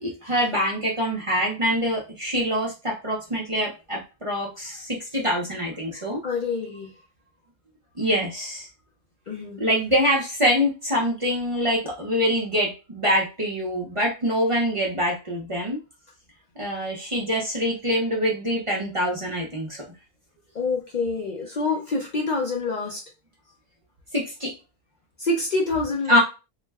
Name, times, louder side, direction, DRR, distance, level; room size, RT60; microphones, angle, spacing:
voice 1, 0.0-6.2 8.0-8.7 9.6-15.8 16.6-19.8 24.1-24.5 26.1-26.2, equal, 35° right, -3 dB, 0.6 m, -25 dB
voice 2, 6.2-6.9 9.3-9.6 20.5-23.0 25.2-26.2, left 3 dB, 55° left, -1 dB, 0.6 m, -26 dB
2.3 x 2.1 x 3.3 m, 0.30 s
omnidirectional pair, 1.1 m